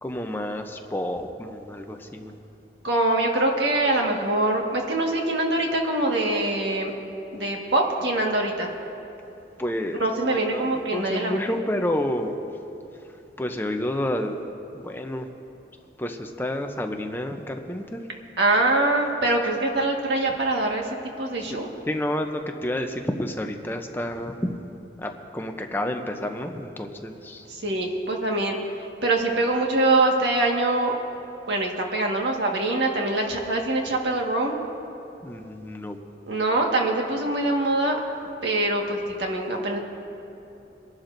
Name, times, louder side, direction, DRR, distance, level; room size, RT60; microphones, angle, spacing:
voice 1, 0.0-2.4 9.6-10.0 10.3-10.6 10.9-12.3 13.4-14.4 14.7-15.3 16.0-18.0 21.5-21.6 21.9-24.5 25.0-27.5 35.2-36.0, left 1 dB, 10° left, 4 dB, 0.6 m, -29 dB
voice 2, 2.8-6.9 7.3-8.7 10.0-11.4 18.4-21.7 27.5-28.5 29.0-31.0 31.5-34.5 36.3-38.0 38.4-39.8, right 2 dB, 80° right, 0 dB, 1.6 m, -24 dB
24.0 x 11.5 x 2.6 m, 2.9 s
head